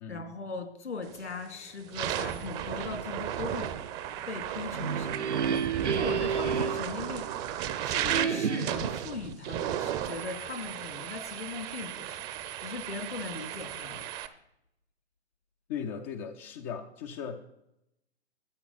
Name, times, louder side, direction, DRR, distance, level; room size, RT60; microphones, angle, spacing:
voice 1, 0.1-3.7 4.3-7.5 7.8-14.0, left 4 dB, 80° left, 6 dB, 2.5 m, -39 dB
sound 1, 1.1-1.3 1.8-14.3, right 11 dB, 25° right, 0.7 m, -35 dB
sound 2, 4.5-7.6 8.1-9.1, right 7 dB, 85° right, 0.7 m, -31 dB
voice 2, 15.7-17.6, left 7 dB, 15° left, 3 dB, 0.4 m, -38 dB
13.5 x 9.9 x 4.1 m, 0.82 s
figure-of-eight pair, 120°, 34 cm